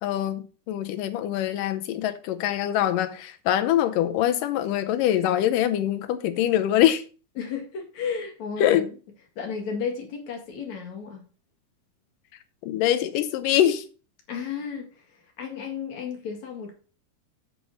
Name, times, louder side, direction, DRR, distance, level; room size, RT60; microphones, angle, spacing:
voice 1, 0.0-7.0 8.6-8.9 12.6-13.8, left 11 dB, 75° left, 2.3 m, -24 dB
voice 2, 7.4-8.9 9.4-11.2 14.3-16.7, left 6 dB, 55° left, 3.0 m, -33 dB
8.2 x 5.0 x 6.2 m
omnidirectional pair, 4.0 m